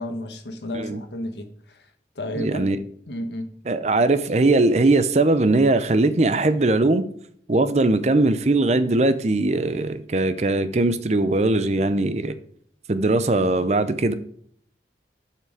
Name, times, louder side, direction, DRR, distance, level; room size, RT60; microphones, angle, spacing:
voice 1, 0.0-2.7 3.1-3.5, left 1 dB, 75° left, 6 dB, 1.3 m, -32 dB
voice 2, 2.4-2.8 3.7-7.0 7.5-12.4 12.9-14.1, right 2 dB, 40° right, 12 dB, 0.6 m, -20 dB
7.6 x 5.9 x 4.9 m, 0.63 s
head